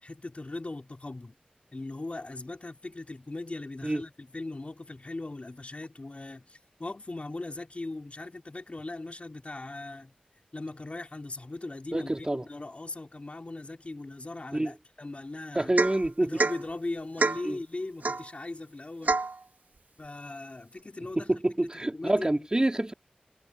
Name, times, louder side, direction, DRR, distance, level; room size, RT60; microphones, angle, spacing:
voice 1, 0.0-1.3 1.7-10.1 10.5-15.7 16.2-19.2 20.0-22.5, left 2 dB, 50° left, 4.3 m, -39 dB
voice 2, 11.9-12.4 14.5-14.7 15.5-16.3 17.4-17.6 21.2-22.9, right 1 dB, 30° right, 2.7 m, -27 dB
Domestic sounds home sounds / Chink clink / Drip, 15.8-16.1 16.4-16.6 17.2-17.5 18.0-18.3 19.1-19.4, right 3 dB, 85° right, 2.3 m, -27 dB
wide cardioid pair, 70°, 3 cm